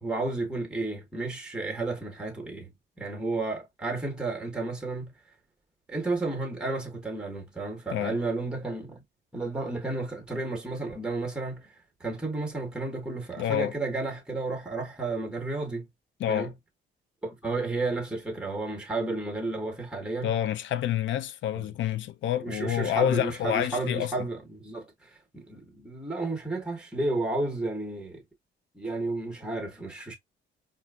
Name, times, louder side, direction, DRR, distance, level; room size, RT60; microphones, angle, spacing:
voice 1, 0.0-2.7 3.0-5.1 5.9-9.0 9.3-11.7 12.0-15.9 16.3-16.5 17.2-20.3 21.5-21.6 22.4-28.2 28.7-30.1, right 2 dB, 5° right, 1.1 m, -32 dB
voice 2, 13.4-13.7 16.2-16.5 20.2-24.1, left 11 dB, 70° left, 0.5 m, -28 dB
4.3 x 2.6 x 2.4 m
cardioid pair, 90°, 20 cm